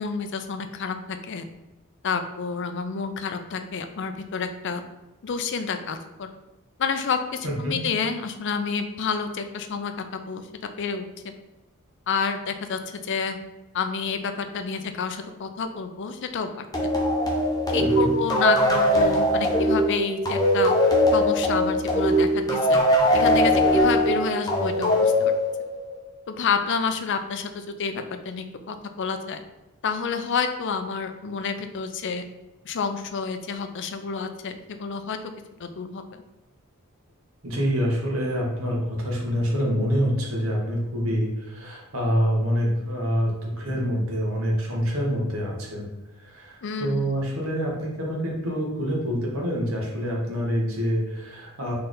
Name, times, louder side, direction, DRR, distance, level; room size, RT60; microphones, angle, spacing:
voice 1, 0.0-1.4 2.0-4.8 5.2-6.3 6.8-10.4 10.8-11.3 12.1-13.4 13.7-16.6 17.7-20.7 21.1-22.8 23.1-25.3 26.3-29.4 29.8-32.2 32.6-35.2 35.6-36.2 46.6-47.1, left 5 dB, 55° left, 8 dB, 0.4 m, -29 dB
voice 2, 7.4-7.8 17.8-18.1 37.4-45.9 46.2-51.7, equal, 65° right, -2 dB, 1.3 m, -26 dB
sound 1, 16.7-26.0, equal, 15° left, 0.8 m, -21 dB
4.3 x 3.2 x 3.8 m, 1.0 s
head